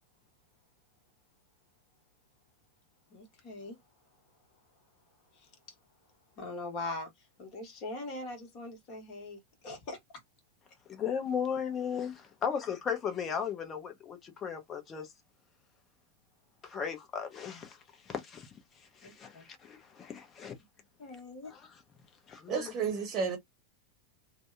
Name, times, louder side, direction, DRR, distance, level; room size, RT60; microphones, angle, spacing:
voice 1, 3.1-3.8 5.3-5.5 6.4-7.1 7.4-10.0 19.0-19.4 21.0-21.5, left 2 dB, 40° left, 1.1 m, -41 dB
voice 2, 10.9-15.1 16.6-20.6 21.4-21.8 22.3-22.7, left 7 dB, 25° left, 0.7 m, -36 dB
voice 3, 22.5-23.4, right 6 dB, 30° right, 0.9 m, -31 dB
2.6 x 2.1 x 2.5 m
figure-of-eight pair, 90°, 0 cm